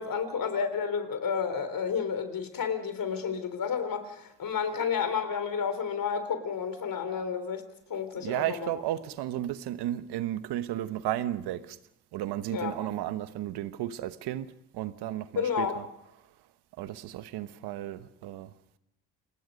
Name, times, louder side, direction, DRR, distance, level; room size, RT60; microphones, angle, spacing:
voice 1, 0.0-8.7 12.5-12.8 15.4-15.8, left 6 dB, 60° left, 3.7 m, -31 dB
voice 2, 8.2-11.8 12.1-15.8 16.8-18.5, right 13 dB, 85° right, 1.1 m, -34 dB
29.5 x 20.0 x 5.2 m
supercardioid pair, 60°, 38 cm